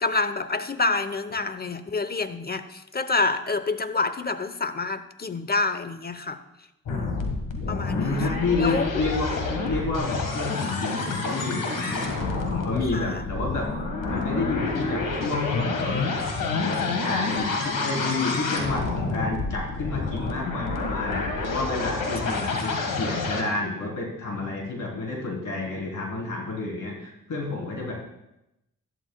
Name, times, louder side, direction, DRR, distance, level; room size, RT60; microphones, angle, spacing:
voice 1, 0.0-6.4 6.9-7.3 7.7-8.2 8.6-8.9 12.9-13.2, left 3 dB, 30° left, 12 dB, 0.9 m, -27 dB
sound 1, 6.9-23.4, left 3 dB, 90° left, 1.7 m, -28 dB
voice 2, 7.6-9.3 9.6-13.7 14.1-16.1 16.5-27.9, left 3 dB, 70° left, -1 dB, 3.7 m, -30 dB
13.5 x 12.0 x 2.3 m, 0.88 s
cardioid pair, 60°, 32 cm